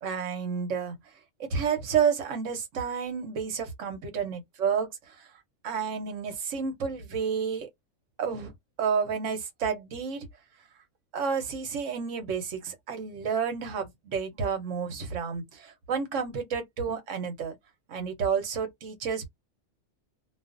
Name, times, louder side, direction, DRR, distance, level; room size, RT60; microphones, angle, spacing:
voice 1, 0.0-1.0 1.4-5.1 5.6-7.7 8.2-8.5 8.8-10.3 11.1-17.6 17.9-19.3, right 6 dB, 75° right, 1.1 m, -30 dB
2.4 x 2.3 x 2.5 m
omnidirectional pair, 1.3 m